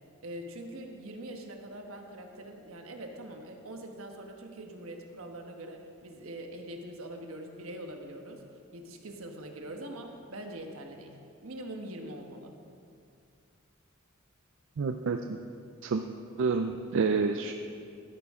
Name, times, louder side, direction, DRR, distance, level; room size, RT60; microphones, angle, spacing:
voice 1, 0.2-8.4 8.7-12.5, right 1 dB, 80° right, 3 dB, 1.2 m, -43 dB
voice 2, 14.8-15.4 15.8-16.0 16.4-17.5, right 4 dB, 65° right, 6 dB, 0.4 m, -28 dB
13.0 x 10.5 x 3.7 m, 2.4 s
head